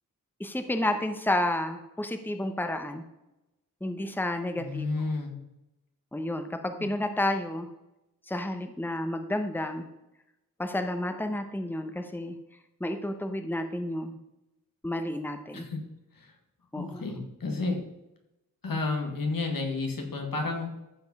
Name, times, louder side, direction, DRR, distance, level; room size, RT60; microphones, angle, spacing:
voice 1, 0.4-3.0 3.8-5.1 6.1-7.7 8.3-9.9 10.6-12.4 12.8-14.2 14.8-15.7 16.7-17.1, left 1 dB, 5° left, 7 dB, 1.0 m, -31 dB
voice 2, 4.6-5.3 6.8-6.9 15.5-15.8 16.2-16.3 16.8-17.8 18.6-20.8, left 3 dB, 80° left, 2 dB, 2.2 m, -31 dB
14.0 x 5.3 x 5.4 m, 0.92 s
wide cardioid pair, 65°, 34 cm